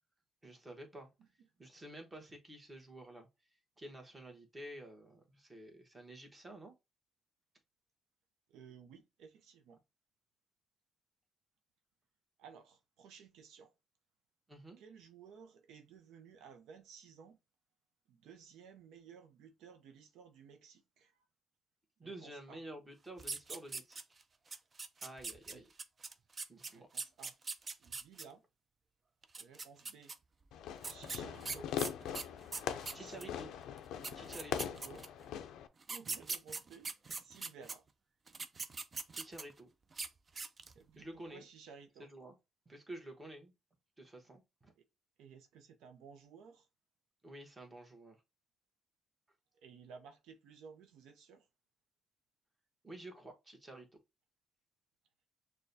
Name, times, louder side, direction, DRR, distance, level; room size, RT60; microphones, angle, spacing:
voice 1, 0.4-1.1 1.6-3.3 3.8-6.7 14.5-14.8 22.0-24.2 25.0-25.7 26.5-26.9 32.9-33.5 34.1-34.7 39.1-39.7 40.9-41.4 42.0-42.3 42.7-43.5 44.0-44.7 47.2-48.2 52.8-53.9, right 1 dB, 20° right, 1.2 m, -50 dB
voice 2, 8.5-9.8 12.4-13.7 14.8-17.4 18.1-21.2 22.0-22.6 25.5-25.7 26.7-27.3 27.8-28.4 29.4-30.1 30.8-31.8 32.6-33.3 34.5-35.1 35.9-36.9 37.2-37.9 40.7-42.1 44.8-44.9 45.2-46.7 49.6-51.5, right 6 dB, 90° right, 0.5 m, -56 dB
sound 1, 23.2-24.2 24.5-28.2 29.2-30.1 30.8-33.3 33.8-33.9 34.0-35.2 35.8-37.7 38.3-39.6 39.9-40.1 40.4-40.8, right 4 dB, 35° right, 0.4 m, -42 dB
Fireworks, 30.5-35.7, left 9 dB, 85° left, 0.4 m, -41 dB
6.3 x 2.2 x 2.6 m
cardioid pair, 90°, 0 cm